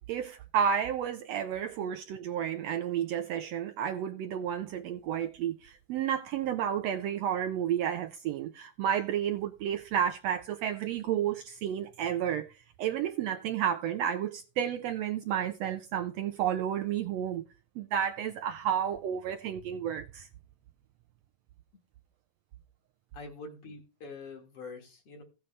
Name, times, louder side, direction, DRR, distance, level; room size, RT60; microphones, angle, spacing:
voice 1, 0.1-17.4 17.8-20.3, right 9 dB, 75° right, 1.5 m, -31 dB
voice 2, 23.1-25.2, left 3 dB, 55° left, 2.4 m, -45 dB
16.0 x 7.0 x 3.2 m
omnidirectional pair, 3.4 m